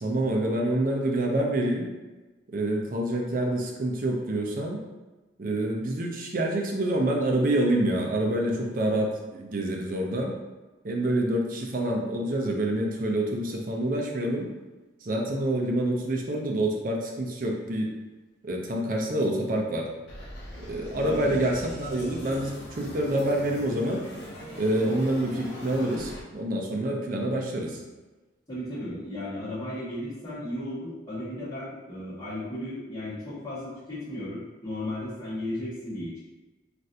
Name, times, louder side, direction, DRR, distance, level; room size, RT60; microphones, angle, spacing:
voice 1, 0.0-1.9 2.5-4.8 5.4-10.3 10.8-14.5 15.0-17.9 18.4-19.9 20.6-24.0 24.6-27.8, right 1 dB, 45° right, 0 dB, 0.5 m, -27 dB
sound 1, 20.1-26.2, equal, 75° left, 0.7 m, -42 dB
voice 2, 21.0-21.5 28.5-36.2, left 1 dB, 20° left, -12 dB, 1.3 m, -35 dB
3.2 x 2.5 x 2.7 m, 1.2 s
head